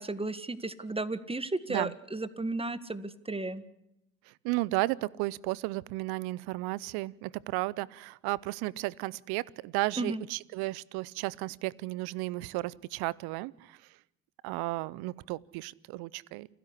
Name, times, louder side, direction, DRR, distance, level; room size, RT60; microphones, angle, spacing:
voice 1, 0.0-3.6 10.0-10.2, right 2 dB, 15° right, 15 dB, 1.7 m, -34 dB
voice 2, 4.3-13.8 14.4-16.5, right 20 dB, 75° right, 24 dB, 0.8 m, -34 dB
29.0 x 11.0 x 10.0 m, 0.83 s
hypercardioid pair, 55°, 39 cm